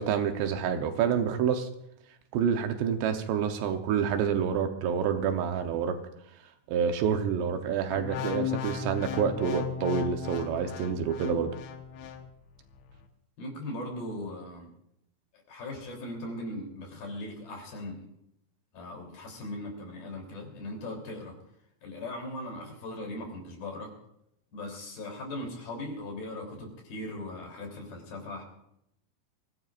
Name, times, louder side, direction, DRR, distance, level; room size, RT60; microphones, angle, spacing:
voice 1, 0.0-1.7 2.3-6.0 6.7-11.5, right 7 dB, 75° right, 6 dB, 3.1 m, -28 dB
sound 1, 7.9-12.2 12.8-13.0, left 8 dB, 90° left, 3.6 m, -36 dB
voice 2, 13.4-14.7 15.5-18.0 18.7-21.3 21.8-23.9 24.5-28.4, left 1 dB, 55° left, 1 dB, 5.1 m, -39 dB
25.5 x 17.0 x 2.5 m, 0.78 s
omnidirectional pair, 5.1 m